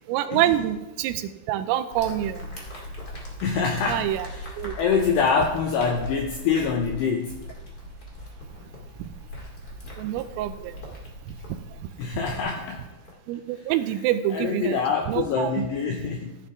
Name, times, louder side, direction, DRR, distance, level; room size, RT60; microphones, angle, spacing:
voice 1, 0.1-2.5 3.9-4.3 4.6-4.7 9.0-9.1 10.0-10.8 11.5-11.6 13.3-14.8 15.1-15.7, right 12 dB, 85° right, 10 dB, 3.2 m, -26 dB
sound 1, 1.9-13.1, left 1 dB, 65° left, 0.9 m, -40 dB
voice 2, 3.4-7.4 12.0-12.8 14.3-16.4, left 5 dB, 85° left, 2 dB, 2.4 m, -25 dB
14.5 x 11.0 x 3.6 m, 1.0 s
omnidirectional pair, 6.0 m